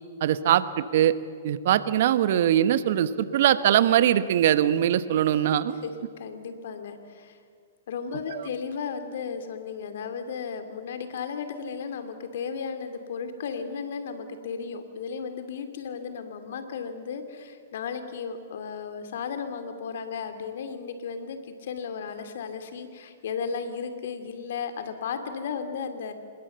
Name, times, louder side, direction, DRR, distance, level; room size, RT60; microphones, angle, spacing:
voice 1, 0.2-1.2 1.4-5.8 8.3-8.5, right 11 dB, 60° right, 14 dB, 1.1 m, -22 dB
voice 2, 6.2-7.4 7.9-26.1, left 6 dB, 65° left, 8 dB, 2.7 m, -35 dB
26.5 x 21.5 x 7.0 m, 2.1 s
hypercardioid pair, 110°, 0 cm